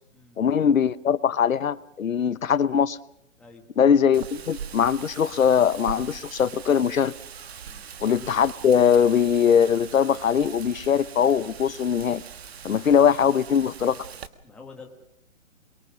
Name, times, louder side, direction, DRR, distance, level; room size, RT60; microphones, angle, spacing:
voice 1, 0.4-3.0 3.8-7.1 8.0-12.2 12.6-14.1, left 7 dB, 80° left, 16 dB, 1.0 m, -21 dB
Wind, 4.1-14.3, right 7 dB, 50° right, 1.5 m, -41 dB
voice 2, 14.4-14.9, left 4 dB, ahead, 0 dB, 1.6 m, -47 dB
24.0 x 23.0 x 6.2 m, 0.73 s
hypercardioid pair, 160°, 39 cm